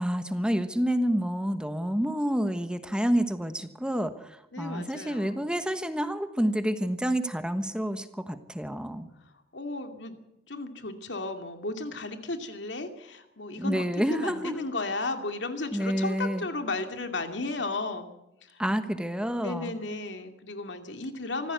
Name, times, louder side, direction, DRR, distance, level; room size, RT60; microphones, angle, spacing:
voice 1, 0.0-4.3 4.6-9.1 13.6-14.6 15.7-16.5 18.6-19.7, equal, 5° right, 10 dB, 1.2 m, -28 dB
voice 2, 4.5-5.5 9.2-18.1 18.4-18.6 18.9-19.1 19.4-21.5, left 2 dB, 85° left, 6 dB, 2.5 m, -35 dB
25.5 x 15.0 x 8.2 m, 0.88 s
head